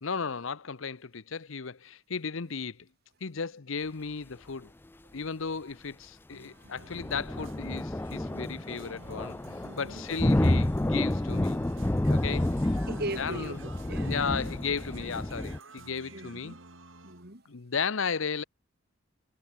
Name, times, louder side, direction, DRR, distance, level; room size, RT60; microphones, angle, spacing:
voice 1, 0.0-2.8 3.2-4.7 5.1-9.4 9.8-11.6 12.1-12.5 13.2-13.6 14.0-16.6 17.5-18.4, left 5 dB, 70° left, 0.8 m, -35 dB
sound 1, 6.3-17.4, right 3 dB, 65° right, 6.3 m, -52 dB
sound 2, 6.8-15.6, left 1 dB, 10° left, 0.3 m, -29 dB
voice 2, 9.6-10.1 12.9-14.1 16.1-16.6 17.0-17.5, right 1 dB, 50° right, 6.3 m, -39 dB
head